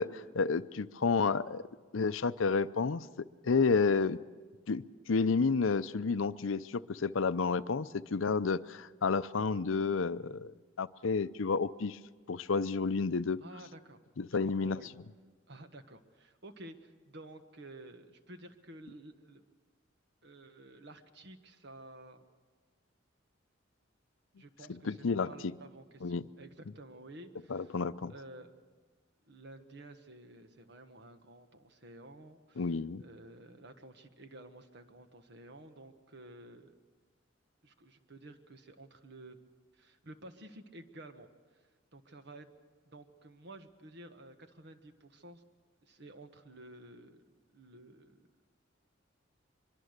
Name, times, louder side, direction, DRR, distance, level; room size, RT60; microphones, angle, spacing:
voice 1, 0.0-1.6 1.9-4.2 4.7-10.5 10.8-12.0 12.3-13.4 14.2-14.8 24.8-25.3 26.0-26.2 27.5-28.1 32.6-33.0, left 4 dB, 90° left, 15 dB, 0.6 m, -30 dB
voice 2, 13.4-14.0 14.3-14.9 15.5-19.4 20.2-22.2 24.4-27.7 28.1-28.5 29.2-32.7 33.0-36.7 37.6-39.4 39.7-41.6 41.9-42.5 42.8-45.4 45.8-48.3, right 1 dB, 60° right, 8 dB, 1.5 m, -52 dB
24.0 x 22.5 x 6.7 m, 1.4 s
head